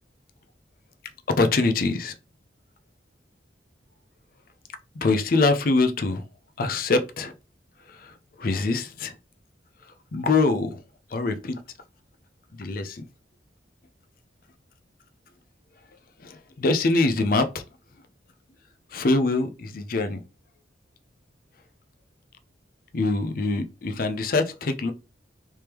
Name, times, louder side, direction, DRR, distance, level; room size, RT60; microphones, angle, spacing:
voice 1, 1.4-2.1 5.0-6.2 6.6-7.3 8.4-9.1 10.1-10.8 11.1-11.6 12.6-13.0 16.2-17.6 18.9-20.2 22.9-24.9, left 3 dB, 50° left, 0.5 m, -24 dB
3.4 x 3.2 x 2.9 m
head